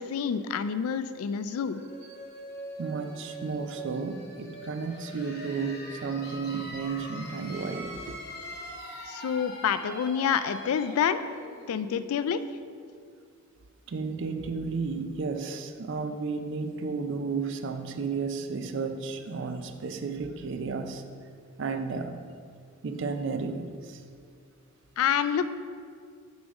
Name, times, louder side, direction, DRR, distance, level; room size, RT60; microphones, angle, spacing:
voice 1, 0.0-1.8 9.1-11.2 11.7-12.4 25.0-25.5, left 7 dB, 85° left, 13 dB, 0.3 m, -27 dB
sound 1, 1.6-13.1, equal, 50° left, 1.0 m, -43 dB
voice 2, 2.8-8.2 13.9-21.0 21.6-22.2 22.8-24.0, right 4 dB, 60° right, 8 dB, 0.4 m, -33 dB
6.1 x 3.6 x 5.2 m, 2.2 s
head